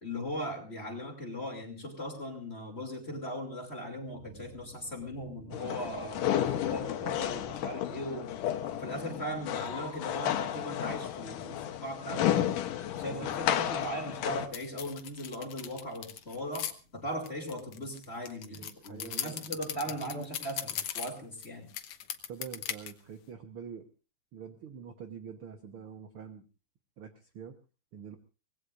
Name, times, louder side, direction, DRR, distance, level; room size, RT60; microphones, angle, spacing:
voice 1, 0.0-8.3 8.7-12.3 13.0-21.7, equal, 20° left, 2 dB, 2.8 m, -38 dB
sound 1, 3.9-22.7, right 2 dB, 15° right, 5.1 m, -59 dB
sound 2, 5.5-14.5, left 11 dB, 85° left, 2.7 m, -32 dB
voice 2, 12.1-12.5 13.0-13.4 18.6-19.6 19.8-20.2 22.3-23.9 24.3-26.4 27.0-27.6 27.9-28.2, right 7 dB, 60° right, 6 dB, 1.5 m, -45 dB
sound 3, 14.5-16.7 17.2-21.5 21.7-22.9, left 10 dB, 65° left, 1.5 m, -38 dB
24.5 x 19.0 x 2.5 m, 0.33 s
omnidirectional pair, 3.7 m